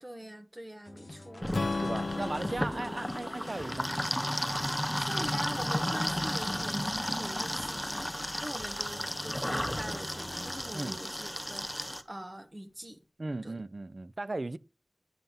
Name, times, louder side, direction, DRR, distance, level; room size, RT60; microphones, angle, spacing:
voice 1, 0.0-1.8 2.1-3.0 3.4-3.5 5.0-13.0 13.4-13.6, right 1 dB, 25° right, 1.4 m, -44 dB
sound 1, 0.9-10.8, left 2 dB, 60° left, 1.0 m, -48 dB
sound 2, 1.4-12.0, equal, 5° left, 1.0 m, -33 dB
Strum, 1.5-5.7, left 3 dB, 85° left, 0.6 m, -37 dB
voice 2, 1.8-3.9 10.7-11.0 13.2-14.6, right 2 dB, 60° right, 0.6 m, -36 dB
11.0 x 5.7 x 7.2 m
wide cardioid pair, 55°, 0 cm